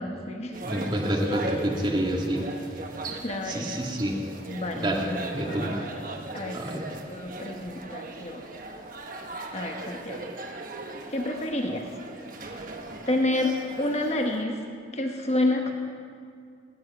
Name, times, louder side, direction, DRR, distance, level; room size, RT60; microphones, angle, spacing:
voice 1, 0.0-0.6 3.2-3.7 4.5-5.9 6.3-8.4 9.5-10.3 11.1-11.9 13.1-14.6 14.9-15.7, left 1 dB, 35° left, 2 dB, 1.1 m, -29 dB
sound 1, 0.5-14.4, right 2 dB, 45° right, 1.2 m, -38 dB
voice 2, 0.6-2.4 3.4-4.2 4.7-5.7 6.5-6.8, right 1 dB, 25° right, -1 dB, 1.9 m, -28 dB
17.5 x 10.5 x 6.0 m, 2.2 s
head